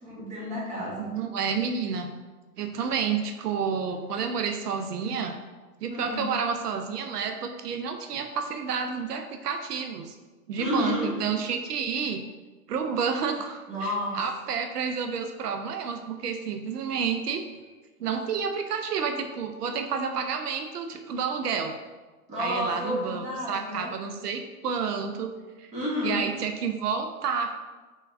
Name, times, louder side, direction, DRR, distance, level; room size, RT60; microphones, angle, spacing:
voice 1, 0.0-1.1 5.9-6.2 10.6-11.1 13.7-14.2 22.3-23.9 25.7-26.2, left 1 dB, 15° right, -5 dB, 1.0 m, -30 dB
voice 2, 1.0-2.1 2.6-5.4 5.8-10.2 10.5-12.2 12.7-17.4 18.0-21.7 22.4-25.3 25.6-25.7 26.0-27.5, right 6 dB, 85° right, 6 dB, 0.6 m, -30 dB
3.6 x 3.4 x 2.6 m, 1.3 s
hypercardioid pair, 130°, 45 cm